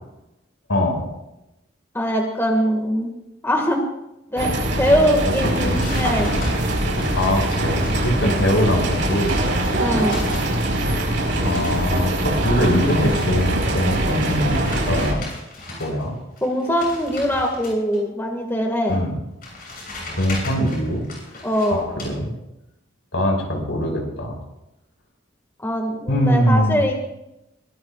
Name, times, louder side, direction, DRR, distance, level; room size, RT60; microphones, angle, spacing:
voice 1, 0.7-1.1 5.6-5.8 7.2-9.5 11.4-14.6 14.9-15.2 15.8-16.2 18.9-19.2 20.1-21.1 21.7-21.8 22.0-22.3 23.1-24.4 26.1-26.8, equal, 80° left, 1 dB, 5.7 m, -22 dB
voice 2, 1.9-3.1 3.4-3.8 4.3-4.5 4.8-6.3 9.8-10.2 16.4-19.0 21.4-21.8 25.6-26.9, equal, 10° left, 1 dB, 2.0 m, -22 dB
sound 1, 4.4-15.1, right 1 dB, 70° right, 5.3 m, -22 dB
sound 2, 5.3-8.6 9.0-10.8 11.1-16.0 16.4-18.0 18.9-19.0 19.4-22.1, left 1 dB, 45° left, 7.4 m, -36 dB
23.0 x 19.0 x 2.5 m, 0.89 s
head